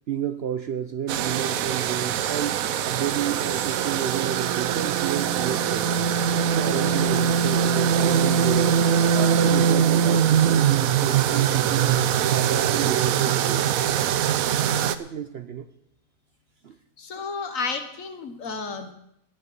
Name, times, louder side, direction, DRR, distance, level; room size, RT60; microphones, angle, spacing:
voice 1, 0.1-2.6 2.9-6.1 6.6-8.8 9.1-11.9 12.3-13.6 14.9-15.7 16.6-16.8, right 9 dB, 55° right, 10 dB, 0.8 m, -31 dB
sound 1, 1.1-14.9, right 8 dB, 70° right, 1.1 m, -22 dB
voice 2, 17.0-18.9, left 4 dB, 65° left, 7 dB, 1.7 m, -32 dB
17.5 x 6.6 x 7.5 m, 0.78 s
omnidirectional pair, 1.6 m